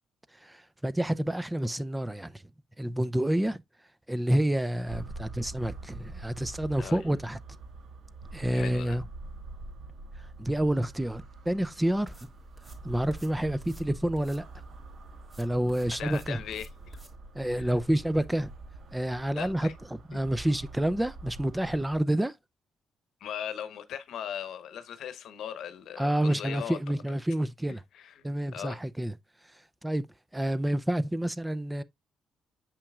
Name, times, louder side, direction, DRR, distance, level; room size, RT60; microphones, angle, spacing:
voice 1, 0.4-2.3 2.8-3.6 4.1-7.4 8.3-9.0 10.4-12.3 12.8-14.4 15.4-16.4 17.3-18.5 18.9-19.7 20.1-22.3 26.0-27.8 28.2-29.1 29.8-30.1 30.3-31.8, right 1 dB, 10° right, 0.5 m, -28 dB
sound 1, 4.9-22.0, right 3 dB, 65° right, 1.3 m, -45 dB
voice 2, 8.5-9.0 16.0-17.0 17.5-17.7 19.3-19.7 23.2-26.8 27.9-28.8, left 9 dB, 75° left, 0.9 m, -39 dB
sound 2, 11.8-17.2, right 1 dB, 25° right, 2.5 m, -51 dB
7.1 x 5.8 x 2.4 m
cardioid pair, 90°, 0 cm